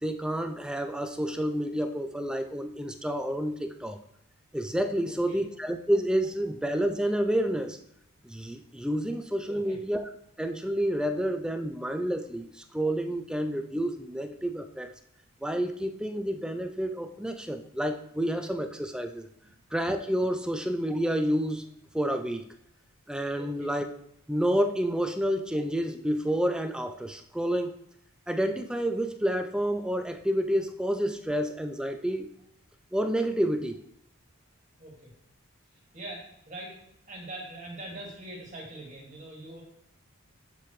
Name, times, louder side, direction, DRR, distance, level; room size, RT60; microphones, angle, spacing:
voice 1, 0.0-4.0 4.5-7.8 8.2-10.1 10.4-14.9 15.4-19.3 19.7-21.7 21.9-22.4 23.1-23.9 24.3-27.7 28.3-32.3 32.9-33.8, equal, 5° right, 7 dB, 0.4 m, -29 dB
voice 2, 5.0-5.4 9.5-9.8 23.4-23.7 34.8-35.1 35.9-36.7 37.1-39.6, right 1 dB, 35° right, -2 dB, 2.0 m, -42 dB
7.1 x 6.9 x 3.1 m, 0.75 s
head